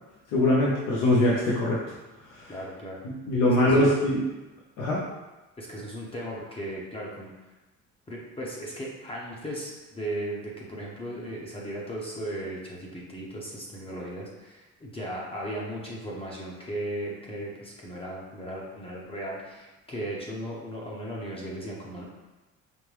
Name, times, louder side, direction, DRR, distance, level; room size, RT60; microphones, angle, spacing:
voice 1, 0.3-1.8 2.3-2.5 3.3-4.3 4.8-5.0, left 1 dB, 85° left, -6 dB, 0.9 m, -22 dB
voice 2, 2.5-3.0 3.6-3.9 5.6-7.3 8.1-22.0, right 1 dB, 20° left, -4 dB, 0.7 m, -36 dB
5.2 x 2.1 x 3.1 m, 1.1 s
cardioid pair, 125°, 31 cm